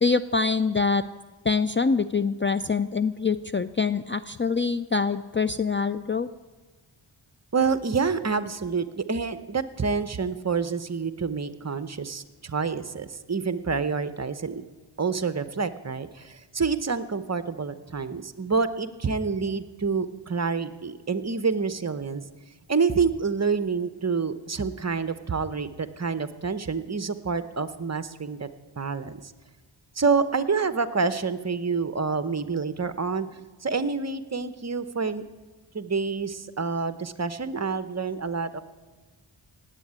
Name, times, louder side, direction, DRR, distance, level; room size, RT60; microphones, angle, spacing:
voice 1, 0.0-1.0 1.4-6.3, left 4 dB, 25° left, 13 dB, 0.4 m, -25 dB
voice 2, 7.5-14.6 15.0-22.2 22.7-28.5 28.8-29.3 30.0-33.3 33.6-35.2 35.7-38.6, right 5 dB, 35° right, 12 dB, 0.9 m, -27 dB
18.0 x 8.3 x 8.8 m, 1.3 s
wide cardioid pair, 80°, 47 cm